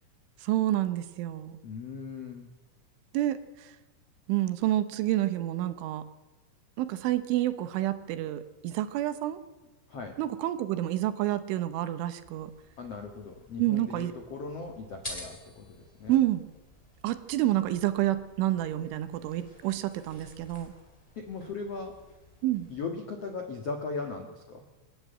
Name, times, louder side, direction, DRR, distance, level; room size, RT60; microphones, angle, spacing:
voice 1, 0.4-1.6 3.1-3.7 4.3-6.0 6.8-9.4 10.2-12.5 13.6-14.1 16.1-16.4 17.0-20.7 22.4-22.7, right 14 dB, 75° right, 11 dB, 3.3 m, -29 dB
voice 2, 1.6-2.5 9.9-10.2 12.8-16.2 21.1-21.9 22.7-24.6, left 4 dB, 80° left, 4 dB, 1.3 m, -38 dB
sound 1, 12.2-22.8, left 1 dB, 10° left, 2.2 m, -50 dB
25.5 x 11.5 x 9.1 m, 1.1 s
omnidirectional pair, 5.9 m